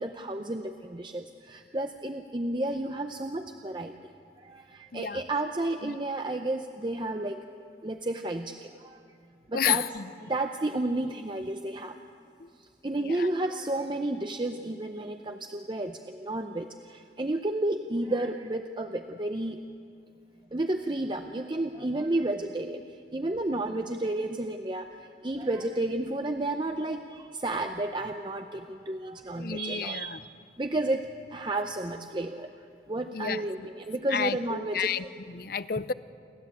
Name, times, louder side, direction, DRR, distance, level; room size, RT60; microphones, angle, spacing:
voice 1, 0.0-4.1 4.4-7.4 7.8-9.0 9.5-9.9 10.2-11.9 12.8-19.6 20.5-22.8 23.1-30.2 30.6-32.5 32.9-34.9 35.8-35.9, right 2 dB, 25° right, 6 dB, 0.6 m, -32 dB
voice 2, 4.9-5.2 5.8-6.0 9.5-10.0 12.4-12.5 13.0-13.3 29.4-30.2 33.1-33.7 34.1-35.9, left 7 dB, 55° left, 15 dB, 0.6 m, -31 dB
28.5 x 13.0 x 8.2 m, 2.3 s
head